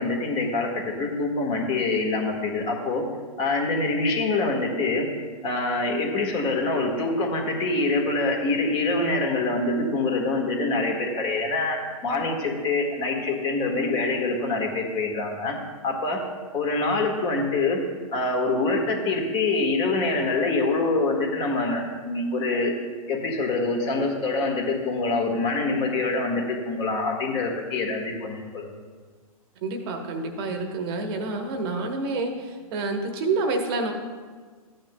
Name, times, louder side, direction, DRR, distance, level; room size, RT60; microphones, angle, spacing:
voice 1, 0.0-3.0 3.4-5.1 5.4-15.5 15.8-16.2 16.5-17.8 18.1-22.7 23.1-28.7, left 3 dB, 25° left, 2 dB, 1.5 m, -25 dB
voice 2, 29.6-33.9, right 3 dB, 40° right, 4 dB, 1.1 m, -28 dB
14.0 x 8.8 x 2.2 m, 1.5 s
hypercardioid pair, 135°, 19 cm